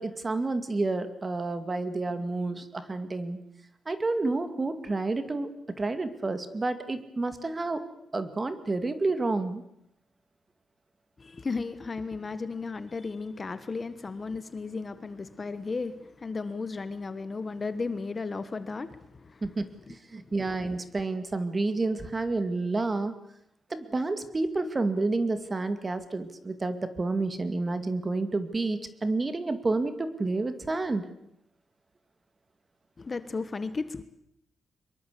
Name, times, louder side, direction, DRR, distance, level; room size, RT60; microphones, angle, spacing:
voice 1, 0.0-3.4 3.9-5.5 5.8-7.8 8.1-9.6 19.4-23.1 23.7-31.1, right 3 dB, 25° right, 2.2 m, -29 dB
voice 2, 11.2-19.5 20.2-20.3 33.0-34.0, left 4 dB, 30° left, 1.3 m, -35 dB
24.0 x 22.5 x 8.5 m
wide cardioid pair, 145°, 0 cm